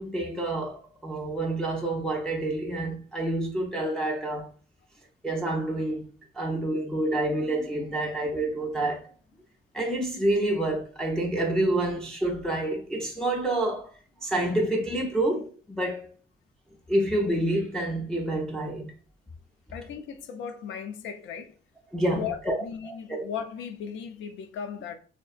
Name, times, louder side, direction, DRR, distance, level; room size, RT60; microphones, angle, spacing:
voice 1, 0.0-4.5 5.2-6.1 6.3-9.1 9.7-13.9 14.2-16.1 16.9-18.9 21.9-22.5 22.8-23.3, right 1 dB, 5° left, 0.4 m, -28 dB
voice 2, 19.7-21.6 22.1-25.0, left 7 dB, 75° left, 0.4 m, -37 dB
2.5 x 2.1 x 2.3 m
cardioid pair, 90°, 20 cm